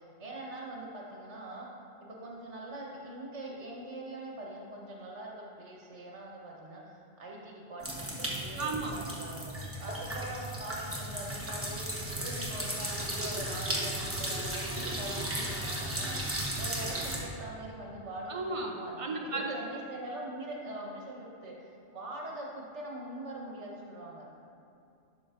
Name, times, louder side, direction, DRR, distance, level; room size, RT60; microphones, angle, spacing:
voice 1, 0.0-1.7 2.0-11.8 12.2-16.2 16.6-21.5 21.9-24.2, right 1 dB, 80° right, -2 dB, 1.5 m, -43 dB
sound 1, 7.8-17.2, right 1 dB, 10° right, 1.0 m, -35 dB
voice 2, 8.6-9.0 18.3-19.6, right 3 dB, 35° right, 1 dB, 0.6 m, -34 dB
11.5 x 5.9 x 2.6 m, 2.6 s
omnidirectional pair, 1.2 m